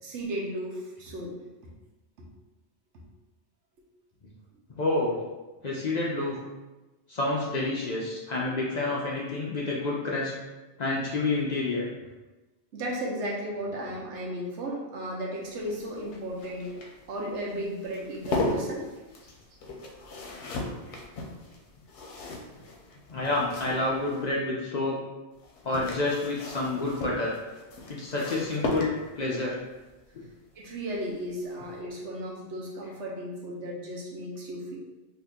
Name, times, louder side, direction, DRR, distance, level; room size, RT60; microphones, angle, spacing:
voice 1, 0.0-1.3 2.2-2.3 5.1-5.2 12.7-16.7 17.1-18.9 30.6-34.8, right 1 dB, 85° right, -2 dB, 1.1 m, -35 dB
voice 2, 4.8-5.2 5.6-6.4 7.1-10.3 10.8-11.9 20.9-21.0 23.1-25.0 25.6-27.3 27.9-29.6 30.1-30.2, left 2 dB, 50° left, -4 dB, 0.5 m, -29 dB
sound 1, 15.4-24.3 25.4-29.3 30.9-31.2 31.5-31.6, left 2 dB, 85° left, 0.9 m, -36 dB
2.8 x 2.7 x 3.5 m, 1.1 s
omnidirectional pair, 1.1 m